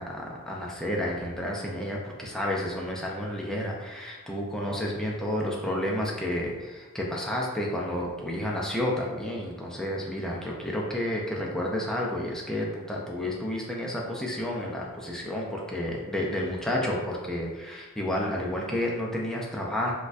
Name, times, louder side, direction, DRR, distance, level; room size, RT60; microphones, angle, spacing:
voice 1, 0.0-19.9, left 1 dB, 5° left, -3 dB, 0.5 m, -31 dB
4.2 x 2.4 x 2.5 m, 1.3 s
head